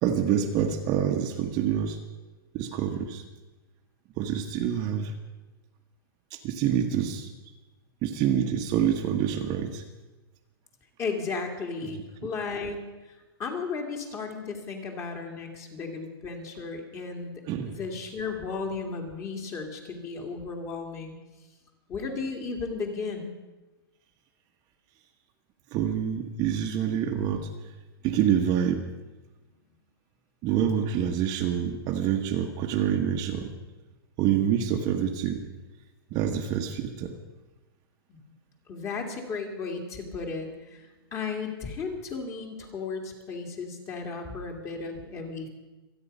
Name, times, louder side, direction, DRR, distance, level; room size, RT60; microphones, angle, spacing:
voice 1, 0.0-2.0 2.5-3.2 4.2-5.1 6.3-7.3 8.0-9.8 11.8-11.9 17.5-17.8 25.7-27.5 28.0-28.8 30.4-33.5 34.2-35.4 36.1-37.1, right 9 dB, 30° right, 3 dB, 1.3 m, -26 dB
voice 2, 11.0-12.8 13.4-17.4 17.7-21.2 21.9-23.3 38.1-38.2 38.7-45.5, left 4 dB, 20° left, 3 dB, 2.5 m, -34 dB
26.5 x 9.5 x 5.5 m, 1.1 s
hypercardioid pair, 150°, 13 cm